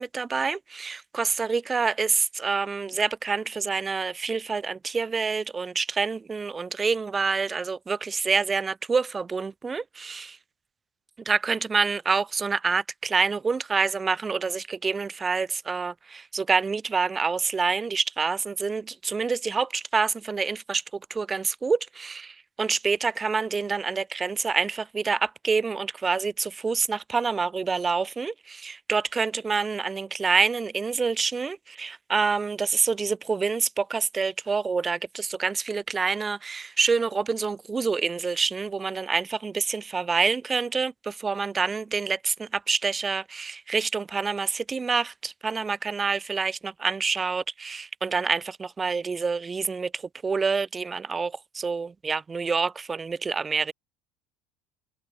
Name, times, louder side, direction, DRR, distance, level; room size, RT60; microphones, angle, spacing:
voice 1, 0.0-10.4 11.3-20.8 21.1-53.7, right 5 dB, 15° right, 0.4 m, -27 dB
cardioid pair, 145°, 0 cm